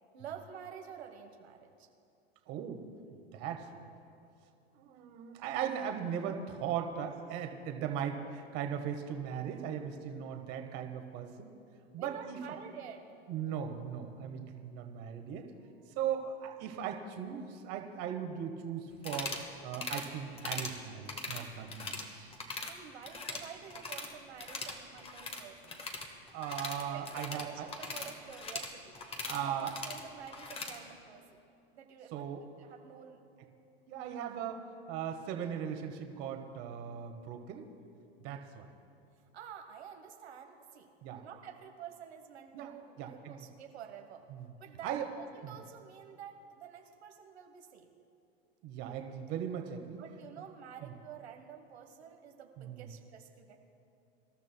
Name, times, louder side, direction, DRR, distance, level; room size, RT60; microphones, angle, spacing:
voice 1, 0.1-1.9 12.0-13.1 22.7-25.8 26.9-29.0 29.4-31.4 31.7-32.3 32.6-33.2 39.3-40.9 41.2-44.3 44.6-47.9 50.0-53.6, right 8 dB, 85° right, 3 dB, 1.2 m, -49 dB
voice 2, 2.5-2.9 3.3-3.8 4.7-11.5 11.9-12.4 13.3-15.5 15.9-19.4 19.6-22.3 26.3-27.7 29.3-29.7 32.1-32.4 33.9-34.6 34.9-37.7 38.2-38.7 41.0-41.2 42.5-42.7 43.0-43.4 44.3-44.4 44.8-45.0 45.4-45.5 48.6-50.0 50.8-50.9 52.6-52.9, right 8 dB, 50° right, 5 dB, 1.4 m, -38 dB
sound 1, 19.0-19.5 19.7-20.1 20.4-20.8 21.1-22.1 22.3-22.7 23.0-24.1 24.4-30.8, left 3 dB, 20° left, 1.4 m, -41 dB
25.0 x 12.0 x 2.2 m, 2.5 s
hypercardioid pair, 115°, 31 cm